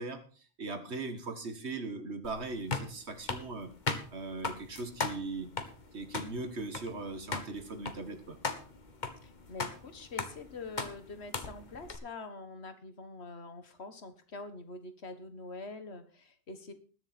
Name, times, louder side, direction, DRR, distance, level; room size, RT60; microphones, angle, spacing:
voice 1, 0.0-3.7 4.1-5.5 5.9-8.4, right 3 dB, 75° right, 8 dB, 1.9 m, -39 dB
sound 1, 2.2-12.0, left 4 dB, 45° left, 1.4 m, -39 dB
voice 2, 9.2-16.7, left 3 dB, 70° left, 9 dB, 1.7 m, -45 dB
20.5 x 7.0 x 4.3 m, 0.39 s
omnidirectional pair, 1.1 m